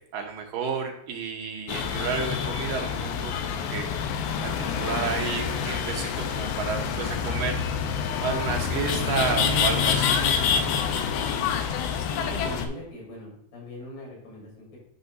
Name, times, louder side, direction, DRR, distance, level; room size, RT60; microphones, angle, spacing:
voice 1, 0.1-3.9 4.6-7.6 8.2-10.3, right 6 dB, 75° right, 2 dB, 2.3 m, -31 dB
sound 1, 1.7-12.7, left 7 dB, 85° left, 2.7 m, -27 dB
voice 2, 12.2-14.8, left 1 dB, 70° left, -3 dB, 5.0 m, -40 dB
9.4 x 6.0 x 2.6 m, 0.77 s
omnidirectional pair, 4.3 m